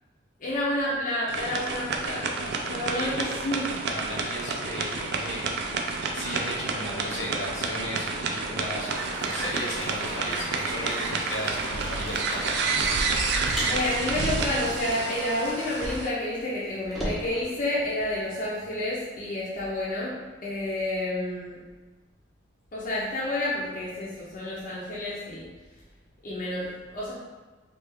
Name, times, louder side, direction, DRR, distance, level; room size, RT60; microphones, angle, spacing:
voice 1, 0.4-3.7 13.7-20.2 20.4-21.6 22.7-25.4 26.2-27.1, left 1 dB, 45° left, -7 dB, 0.6 m, -30 dB
sound 1, 1.3-16.1, right 4 dB, 55° right, 0.3 m, -30 dB
voice 2, 2.9-3.4 3.9-13.0, left 1 dB, 75° left, -3 dB, 0.9 m, -36 dB
Applause, 8.9-16.0, right 1 dB, 85° right, 0.7 m, -39 dB
Car, 13.5-16.3 16.5-18.4, equal, ahead, 0.6 m, -37 dB
3.3 x 2.4 x 3.4 m, 1.3 s
head